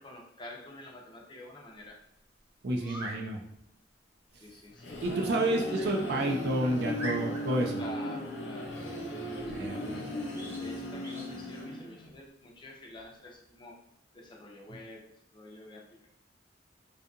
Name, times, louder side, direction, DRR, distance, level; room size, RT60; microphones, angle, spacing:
voice 1, 0.0-1.9 2.7-3.1 4.4-5.0 7.8-8.8 9.1-10.1 10.6-13.8 14.1-16.1, left 1 dB, 25° left, -1 dB, 0.4 m, -48 dB
voice 2, 2.6-3.4 5.0-7.8 9.5-10.0, right 1 dB, 60° right, 2 dB, 0.4 m, -30 dB
sound 1, 2.8-3.2 5.7-5.9 6.4-6.5 7.0-7.6 10.3-10.6 11.0-11.3, right 1 dB, 15° right, 0.6 m, -41 dB
sound 2, 4.5-12.2, left 1 dB, 80° left, 0.6 m, -37 dB
2.7 x 2.3 x 2.5 m, 0.78 s
head